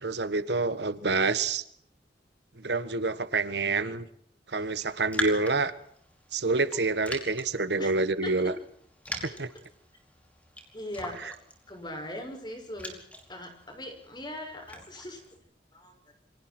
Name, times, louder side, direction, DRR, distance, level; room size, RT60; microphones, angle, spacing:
voice 1, 0.0-1.6 2.6-4.1 4.5-5.7 6.3-8.5 9.2-9.5 11.2-11.3, right 3 dB, 75° right, 13 dB, 1.5 m, -27 dB
Raindrop, 4.7-15.4, equal, 10° left, 5.0 m, -42 dB
voice 2, 10.7-11.3 11.7-12.9 13.3-15.2 15.7-15.9, left 1 dB, 25° left, 4 dB, 6.2 m, -39 dB
29.0 x 24.5 x 4.5 m, 0.66 s
head